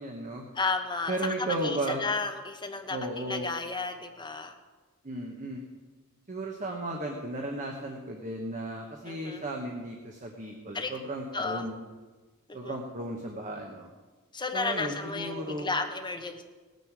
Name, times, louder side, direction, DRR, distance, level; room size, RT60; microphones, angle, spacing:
voice 1, 0.0-0.4 1.1-2.0 2.9-3.5 5.0-5.6 6.3-11.8 12.5-13.9 14.5-15.7, right 1 dB, 35° right, 1 dB, 1.2 m, -35 dB
voice 2, 0.5-4.5 9.1-9.4 10.7-10.9 11.3-11.7 12.6-12.8 14.3-16.4, left 4 dB, 20° left, 4 dB, 1.1 m, -33 dB
18.5 x 9.4 x 4.8 m, 1.3 s
head